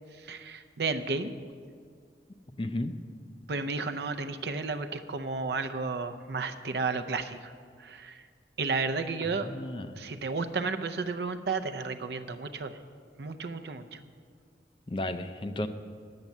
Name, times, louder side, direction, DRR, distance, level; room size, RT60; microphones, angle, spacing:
voice 1, 0.2-1.3 3.5-7.5 7.8-8.2 8.6-9.5 10.0-12.8 13.2-14.0, right 4 dB, 70° right, 9 dB, 0.6 m, -32 dB
voice 2, 2.6-2.9 9.4-10.0 14.9-15.7, left 1 dB, 30° left, 9 dB, 0.4 m, -33 dB
10.5 x 6.6 x 7.2 m, 2.1 s
head